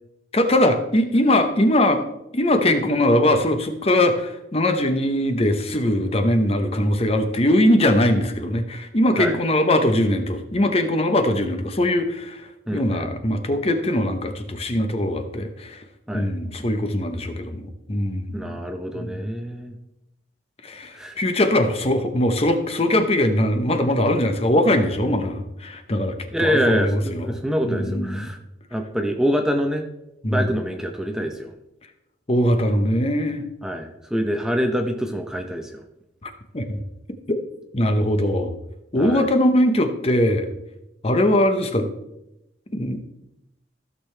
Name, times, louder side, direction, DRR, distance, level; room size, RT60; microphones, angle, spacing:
voice 1, 0.3-2.0 2.3-15.8 16.1-18.6 18.9-19.2 20.6-26.1 26.4-27.4 27.6-28.3 30.2-30.5 32.3-33.4 36.2-36.8 37.7-38.5 38.9-40.5 41.0-41.9 42.7-43.0, left 1 dB, 35° left, 7 dB, 0.9 m, -21 dB
voice 2, 12.7-13.1 16.1-16.3 18.3-19.8 20.9-21.2 26.3-28.4 28.7-29.9 30.3-31.5 33.6-35.8 39.0-39.3, equal, 5° right, 4 dB, 0.7 m, -25 dB
15.0 x 6.6 x 3.3 m, 0.89 s
head